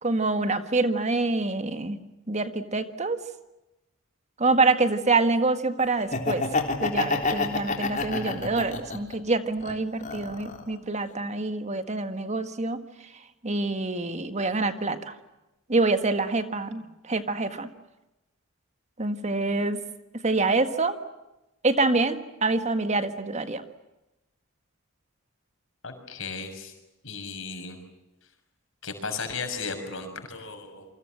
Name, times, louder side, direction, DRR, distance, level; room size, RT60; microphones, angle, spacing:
voice 1, 0.0-2.0 2.3-3.2 4.4-6.4 6.8-12.8 13.4-15.1 15.7-17.7 19.0-19.8 20.2-21.0 21.6-23.6, right 3 dB, 35° right, 9 dB, 1.7 m, -26 dB
Laughter, 6.0-9.1 9.6-10.7, left 3 dB, 40° left, 3.7 m, -28 dB
voice 2, 25.8-26.7 27.0-27.8 28.8-30.9, left 4 dB, 65° left, 6 dB, 6.5 m, -35 dB
28.5 x 25.0 x 7.7 m, 0.96 s
head